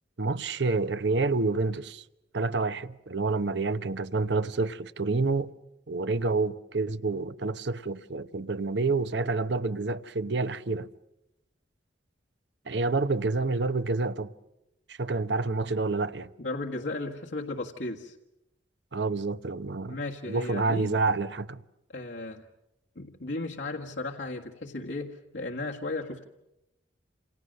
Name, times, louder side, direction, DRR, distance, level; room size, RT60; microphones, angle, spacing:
voice 1, 0.2-2.0 2.3-5.5 5.9-10.9 12.7-14.3 14.9-16.3 18.9-20.0 20.3-21.6, right 3 dB, 65° right, 0.9 m, -28 dB
voice 2, 16.4-18.2 19.9-20.9 21.9-22.5 23.0-26.3, left 2 dB, 75° left, 1.8 m, -35 dB
29.0 x 28.5 x 6.6 m
head